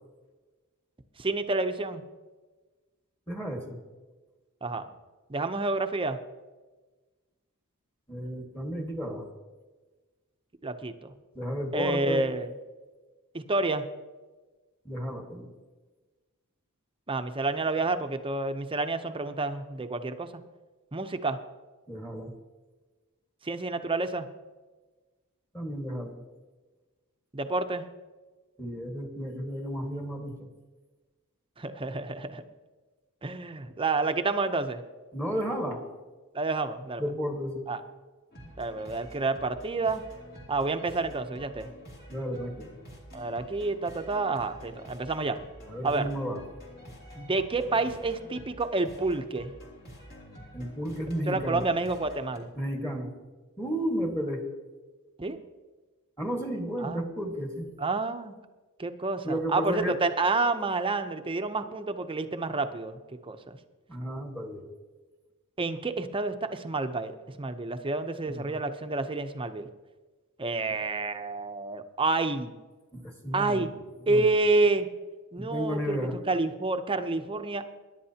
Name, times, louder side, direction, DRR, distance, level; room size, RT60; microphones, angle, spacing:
voice 1, 1.2-2.0 4.6-4.8 5.3-6.2 10.6-11.1 11.7-12.5 13.5-13.9 17.1-20.3 20.9-21.4 23.4-24.3 27.3-27.8 31.6-32.4 33.2-34.8 36.3-37.0 37.7-37.8 38.6-40.0 40.5-41.7 43.1-45.4 45.8-46.1 47.1-49.5 51.3-52.5 55.2-55.4 56.8-57.0 57.8-58.4 58.8-63.0 63.3-63.6 65.6-67.1 67.4-69.7 70.4-72.5 73.3-73.7 74.1-74.9 75.3-76.0 76.3-77.6, right 3 dB, 25° right, 8 dB, 0.7 m, -29 dB
voice 2, 3.3-3.8 8.1-9.3 11.3-12.2 14.8-15.5 21.9-22.3 25.5-26.2 28.6-30.3 35.1-35.8 37.0-37.7 42.1-42.7 45.7-46.4 50.5-51.6 52.6-53.1 53.6-54.4 56.2-57.7 59.2-60.0 63.9-64.6 68.3-68.6 72.9-73.7 74.0-74.2 75.4-76.2, equal, 10° left, 2 dB, 1.6 m, -33 dB
sound 1, 38.3-52.4, equal, 45° left, 2.8 m, -48 dB
22.0 x 11.0 x 2.9 m, 1.3 s
head